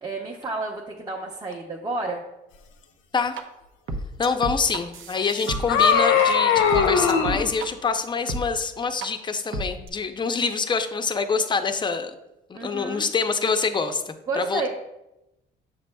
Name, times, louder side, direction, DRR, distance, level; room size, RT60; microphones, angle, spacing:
voice 1, 0.0-2.2 12.5-13.1 14.3-14.7, right 3 dB, 20° right, -3 dB, 0.9 m, -30 dB
sound 1, 3.4-3.5 3.9-6.2 6.5-7.7 8.3-8.4 9.0-9.1 9.5-9.9, right 2 dB, 80° right, 0.7 m, -32 dB
voice 2, 4.2-12.1 12.5-14.7, left 5 dB, 25° left, 8 dB, 0.6 m, -26 dB
sound 2, 5.3-7.5, left 6 dB, 85° left, 0.7 m, -20 dB
6.8 x 6.8 x 2.2 m, 0.91 s
cardioid pair, 90°, 20 cm